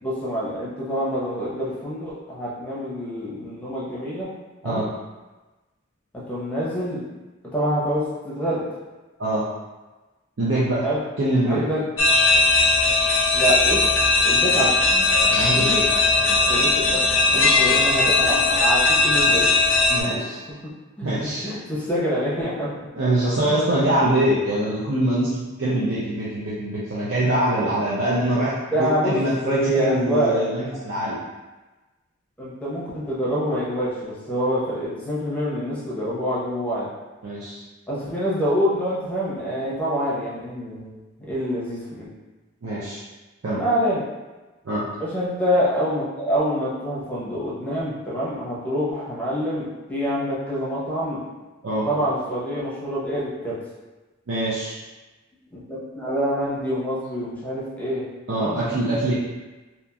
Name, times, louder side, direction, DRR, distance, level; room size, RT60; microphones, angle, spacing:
voice 1, 0.0-4.3 4.6-4.8 6.1-7.0 7.5-8.8 10.8-11.0 11.5-11.8 13.3-14.8 16.5-17.0 17.3-19.5 21.0-21.1 21.4-22.7 23.5-23.6 28.3-29.2 29.4-30.4 32.4-36.9 37.9-40.9 41.3-42.1 43.5-44.0 45.0-51.2 51.8-53.6 55.5-58.0 58.3-58.6, equal, 5° left, -8 dB, 0.6 m, -26 dB
voice 2, 10.4-10.8 11.2-11.6 14.5-14.6 15.3-15.9 19.9-20.4 21.0-21.5 23.0-28.5 28.8-31.2 37.2-37.6 42.6-43.0 43.4-43.6 44.6-44.9 51.6-51.9 54.3-54.8 58.3-59.1, right 1 dB, 65° right, -9 dB, 0.5 m, -23 dB
sound 1, 12.0-20.0, left 3 dB, 70° left, 0.5 m, -18 dB
2.8 x 2.4 x 2.3 m, 1.2 s
head